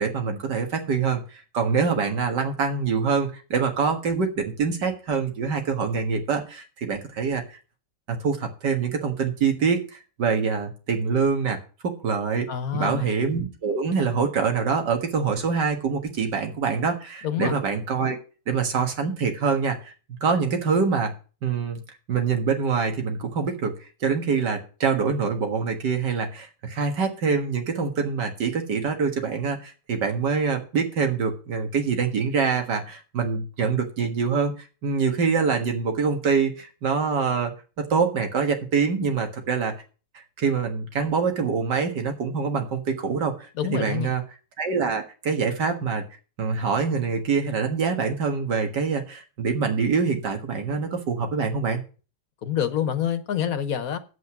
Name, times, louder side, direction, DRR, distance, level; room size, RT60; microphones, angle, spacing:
voice 1, 0.0-7.6 8.1-9.9 10.2-11.6 11.8-18.2 18.5-21.1 21.4-21.8 22.1-23.7 24.0-37.5 37.8-39.7 40.4-44.2 44.6-46.0 46.4-51.8, right 5 dB, 90° right, 2.2 m, -25 dB
voice 2, 12.5-13.1 17.2-17.6 43.5-44.1 52.4-54.0, left 9 dB, 60° left, 1.3 m, -27 dB
9.2 x 8.0 x 6.0 m
omnidirectional pair, 1.8 m